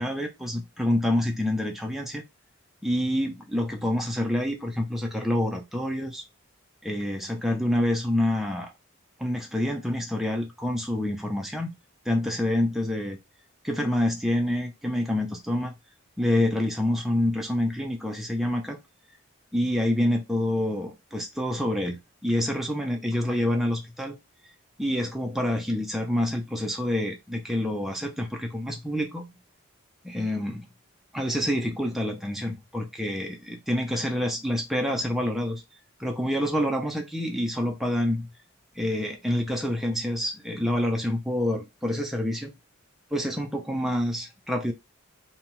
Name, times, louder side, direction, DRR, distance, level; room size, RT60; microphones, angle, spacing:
voice 1, 0.0-2.2 2.8-6.2 6.8-8.7 9.2-11.7 12.1-13.2 13.6-15.7 16.2-18.8 19.5-24.2 24.8-29.3 30.0-30.7 31.1-35.6 36.0-38.3 38.8-42.5 43.1-44.7, left 1 dB, ahead, 0.4 m, -27 dB
2.7 x 2.3 x 3.0 m
head